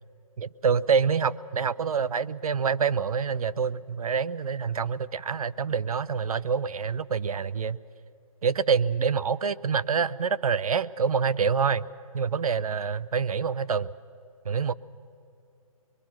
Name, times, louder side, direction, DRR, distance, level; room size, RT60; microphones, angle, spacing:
voice 1, 0.4-7.8 8.4-11.9 12.1-13.9 14.5-14.7, right 6 dB, 75° right, 18 dB, 0.6 m, -26 dB
24.0 x 22.5 x 6.0 m, 2.8 s
hypercardioid pair, 160°, 18 cm